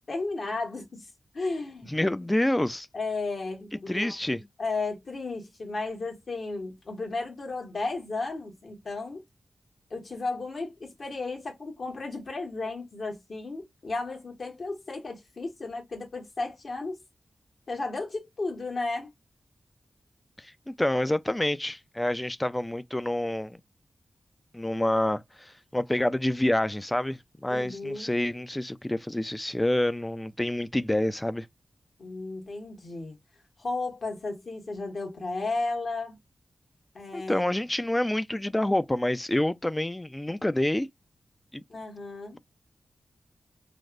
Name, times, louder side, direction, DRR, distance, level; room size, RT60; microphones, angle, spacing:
voice 1, 0.1-1.1 1.3-1.9 2.9-9.2 9.9-17.0 17.7-19.1 27.5-28.1 32.0-33.2 33.6-36.2 36.9-37.5 41.7-42.4, left 3 dB, 65° left, 1.3 m, -34 dB
voice 2, 1.9-2.9 3.7-4.5 20.4-23.6 24.5-31.5 37.1-40.9 41.5-41.6, left 1 dB, 15° left, 0.3 m, -27 dB
3.3 x 2.1 x 2.4 m
cardioid pair, 60°, 0 cm